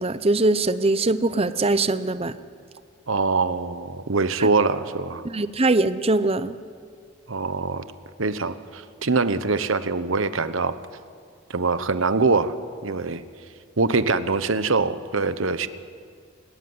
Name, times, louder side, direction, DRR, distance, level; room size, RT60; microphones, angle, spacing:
voice 1, 0.0-2.3 5.2-6.6, right 2 dB, 30° right, 12 dB, 0.8 m, -22 dB
voice 2, 3.1-5.2 7.3-7.8 8.2-10.7 11.5-12.5 12.8-13.2 13.8-15.7, right 4 dB, 80° right, 12 dB, 1.1 m, -23 dB
28.5 x 13.5 x 9.6 m, 2.1 s
head